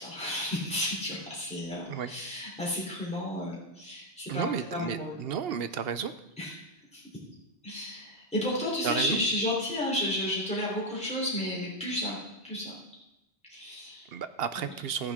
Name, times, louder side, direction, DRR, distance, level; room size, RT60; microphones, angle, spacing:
voice 1, 0.0-5.1 6.4-6.5 6.9-7.0 7.6-12.2 12.4-12.7 13.5-14.1 14.6-14.7, left 1 dB, 5° left, -5 dB, 3.3 m, -32 dB
voice 2, 4.3-6.1 8.8-9.2 14.1-15.1, right 7 dB, 65° right, 12 dB, 0.8 m, -32 dB
13.5 x 9.8 x 3.6 m, 0.90 s
omnidirectional pair, 1.1 m